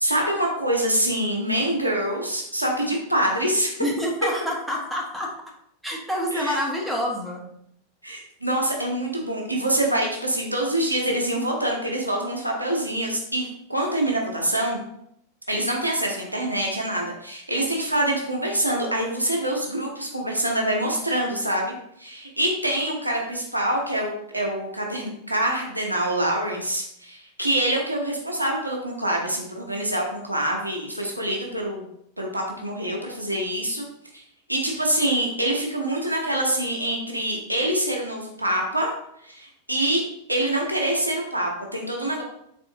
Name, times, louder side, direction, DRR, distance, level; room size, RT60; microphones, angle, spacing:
voice 1, 0.0-3.7 6.3-6.6 8.0-14.8 15.5-31.8 32.2-33.9 34.1-34.2 34.5-38.9 39.2-40.0 40.3-42.2, right 1 dB, 85° right, 0 dB, 0.8 m, -25 dB
voice 2, 3.8-5.3 5.8-7.4, left 1 dB, ahead, -2 dB, 0.9 m, -27 dB
3.6 x 3.5 x 2.7 m, 0.72 s
figure-of-eight pair, 90°, 0 cm